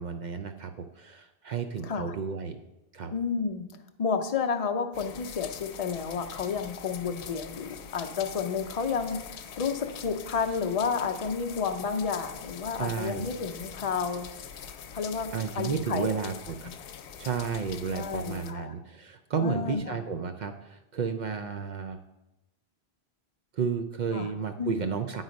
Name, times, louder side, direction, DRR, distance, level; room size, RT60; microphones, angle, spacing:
voice 1, 0.0-2.6 2.9-3.1 12.8-13.3 15.3-16.7 17.2-22.0 23.5-25.2, right 6 dB, 55° right, 7 dB, 0.5 m, -32 dB
voice 2, 1.8-2.1 3.1-3.6 4.0-14.3 14.9-16.1 17.9-18.7 19.4-20.0 24.1-24.3 24.6-24.7, left 5 dB, 40° left, 5 dB, 0.6 m, -31 dB
sound 1, 4.9-18.5, left 8 dB, 90° left, 0.9 m, -43 dB
9.0 x 4.0 x 5.1 m, 0.95 s
omnidirectional pair, 1.1 m